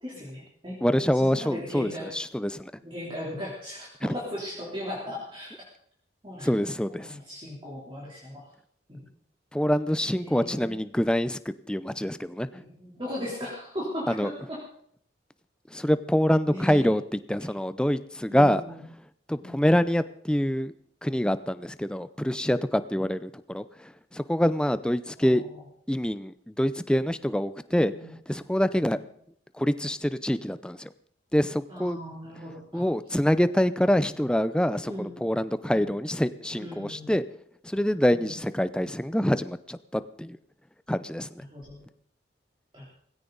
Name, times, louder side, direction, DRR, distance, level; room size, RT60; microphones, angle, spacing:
voice 1, 0.0-0.8 1.0-2.1 2.8-5.5 6.2-6.6 6.9-8.4 8.9-9.0 10.1-10.8 12.5-14.6 16.5-16.9 18.3-18.8 19.4-19.7 25.2-25.6 27.7-28.1 28.7-29.0 31.7-32.8 34.9-35.2 35.7-35.9 36.5-37.1 38.1-38.4 41.4-41.9 42.7-42.9, left 1 dB, 25° right, -5 dB, 3.3 m, -38 dB
voice 2, 0.8-2.7 4.0-4.1 6.4-7.2 9.5-11.4 11.7-12.5 14.1-14.3 15.7-18.6 19.3-20.7 21.0-25.4 25.9-27.9 28.3-29.0 29.6-30.9 31.3-32.0 32.7-37.2 37.6-40.4 40.9-41.4, equal, 5° left, 14 dB, 0.5 m, -25 dB
17.5 x 16.5 x 4.0 m, 0.64 s
head